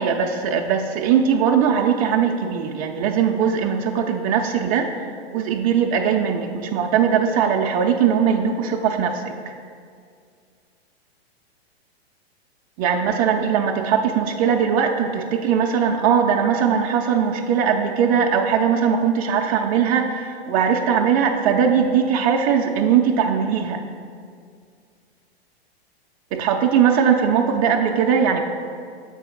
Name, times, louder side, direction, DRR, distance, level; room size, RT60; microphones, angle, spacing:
voice 1, 0.0-4.9 5.3-9.3 12.8-23.8 26.3-28.4, right 7 dB, 30° right, 1 dB, 0.4 m, -20 dB
7.0 x 3.9 x 5.6 m, 2.2 s
hypercardioid pair, 105°, 32 cm